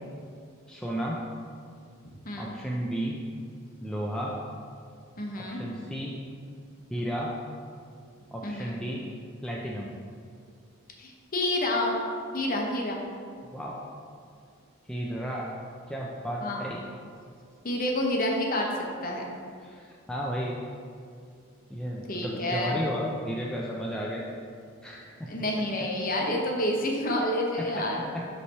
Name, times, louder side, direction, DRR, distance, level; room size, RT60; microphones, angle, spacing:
voice 1, 0.7-1.2 2.4-3.2 3.8-4.4 5.4-6.2 6.9-7.3 8.3-9.0 9.4-9.9 13.5-13.8 14.9-15.5 15.9-16.8 19.6-20.5 21.7-24.3 24.8-25.3 26.4-26.5 27.6-28.3, equal, 5° left, -4 dB, 0.3 m, -33 dB
voice 2, 2.2-2.5 5.2-5.6 8.4-8.8 11.0-12.0 12.3-13.0 16.4-16.7 17.6-18.7 19.0-19.2 22.1-22.8 25.3-28.0, left 1 dB, 40° left, 0 dB, 0.8 m, -28 dB
5.4 x 3.3 x 5.4 m, 2.2 s
head